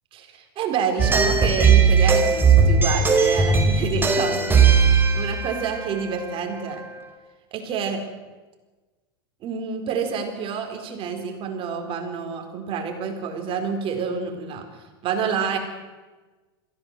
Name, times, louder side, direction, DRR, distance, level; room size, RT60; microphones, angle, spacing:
voice 1, 0.1-6.8 7.5-8.0 9.4-14.7 15.0-15.6, right 6 dB, 40° right, 5 dB, 4.4 m, -28 dB
sound 1, 1.0-6.8, right 5 dB, 15° right, 4.3 m, -18 dB
22.0 x 16.0 x 7.7 m, 1.2 s
hypercardioid pair, 105°, 13 cm